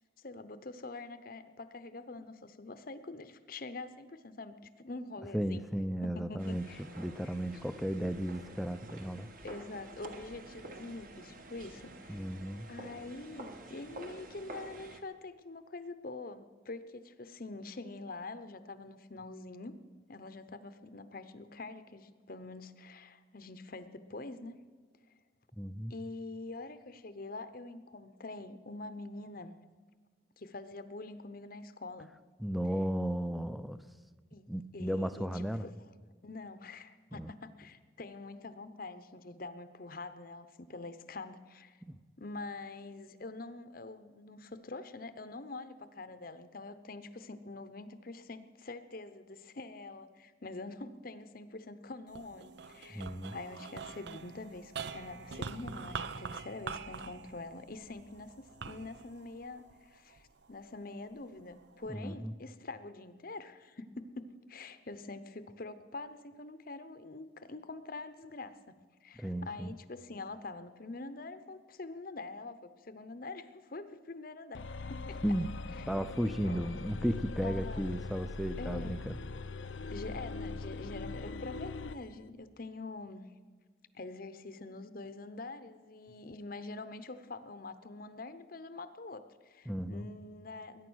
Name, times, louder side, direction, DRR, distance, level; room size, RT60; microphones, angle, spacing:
voice 1, 0.2-5.7 6.0-6.8 7.2-7.4 9.4-12.3 12.7-19.8 20.1-24.6 25.9-29.5 30.4-32.1 34.3-35.8 36.2-41.8 42.2-53.0 53.3-68.5 69.0-74.6 74.9-75.2 75.7-76.0 76.4-76.9 77.4-78.0 78.6-79.0 79.9-83.3 83.9-90.9, left 3 dB, 50° left, 12 dB, 0.8 m, -45 dB
voice 2, 5.3-6.7 7.0-9.3 12.1-12.7 25.6-25.9 32.4-33.8 34.5-35.7 37.1-37.3 41.8-42.0 52.9-53.4 61.9-62.3 69.2-69.7 75.2-75.5 75.9-79.2 89.7-90.1, equal, ahead, 12 dB, 0.6 m, -34 dB
sound 1, 6.4-15.0, right 2 dB, 45° right, 1.5 m, -49 dB
sound 2, 52.1-60.5 61.1-61.9, right 5 dB, 60° right, 0.7 m, -44 dB
sound 3, 74.5-82.0, left 3 dB, 80° left, 0.7 m, -41 dB
21.0 x 10.0 x 6.3 m, 1.5 s
head